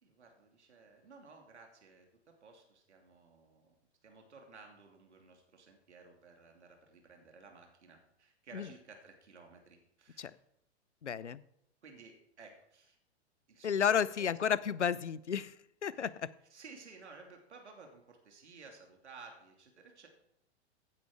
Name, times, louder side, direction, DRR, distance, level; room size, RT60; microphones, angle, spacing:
voice 1, 0.0-3.7 4.0-10.4 11.8-13.0 13.5-14.7 15.9-16.1 16.5-20.1, right 4 dB, 75° right, 3 dB, 2.9 m, -56 dB
voice 2, 11.0-11.4 13.6-15.6 15.8-16.1, left 7 dB, 85° left, 19 dB, 0.7 m, -31 dB
16.0 x 8.7 x 4.9 m, 0.79 s
figure-of-eight pair, 100°, 34 cm